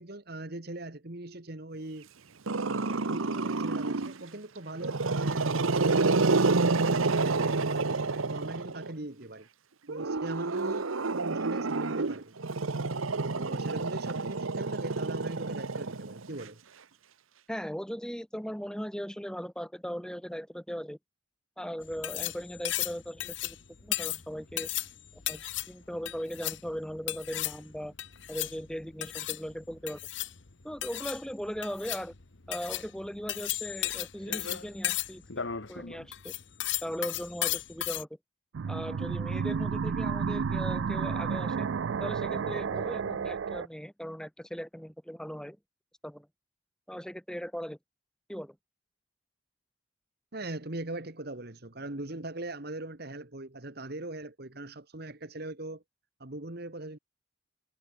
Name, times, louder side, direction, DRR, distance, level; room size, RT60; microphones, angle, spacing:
voice 1, 0.0-2.1 2.6-6.3 6.9-9.5 9.9-12.3 13.2-16.6 50.3-55.8 56.2-57.0, right 2 dB, 50° right, 1.7 m, -40 dB
Growling, 2.5-4.2 4.7-8.9 9.9-16.4, right 3 dB, 85° right, 1.1 m, -29 dB
voice 2, 17.5-21.0 21.6-23.6 23.8-24.7 25.1-27.9 28.3-30.0 30.6-32.1 32.5-35.2 35.7-36.3 36.8-38.1 38.7-41.7 42.0-45.6 46.0-46.3 46.9-47.8 48.3-48.6, equal, 5° left, 3.6 m, -38 dB
sound 1, 21.8-38.0, left 13 dB, 65° left, 1.3 m, -35 dB
sound 2, 38.5-43.7, right 6 dB, 65° right, 0.4 m, -31 dB
head